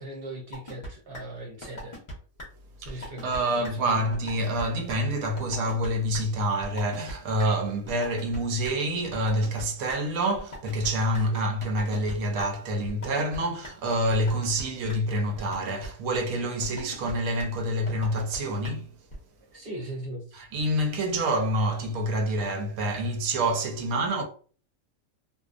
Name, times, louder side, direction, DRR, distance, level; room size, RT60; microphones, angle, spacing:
voice 1, 0.0-2.0 2.8-4.0 11.3-11.4 19.5-20.4, right 1 dB, 55° right, 0.7 m, -39 dB
sound 1, 0.5-0.9 1.1-1.2 1.6-2.1 2.4-2.5 2.9-3.4 3.6-3.7 4.1-4.6 4.9-5.0 5.4-5.9 6.1-6.2 6.6-7.1 7.4-7.5 7.9-8.4 8.6-8.7 9.1-10.0 10.4-11.2 11.6-12.1 12.4-12.5 12.9-13.4 13.6-13.7 14.1-14.6 14.9-15.0 15.4-15.9 16.1-16.2 16.6-17.1 17.4-17.5 17.9-18.4 18.6-18.7 19.1-19.2, equal, 40° left, 0.4 m, -39 dB
voice 2, 2.8-18.9 20.3-24.2, right 1 dB, 90° right, 1.1 m, -27 dB
2.6 x 2.0 x 2.4 m
omnidirectional pair, 1.5 m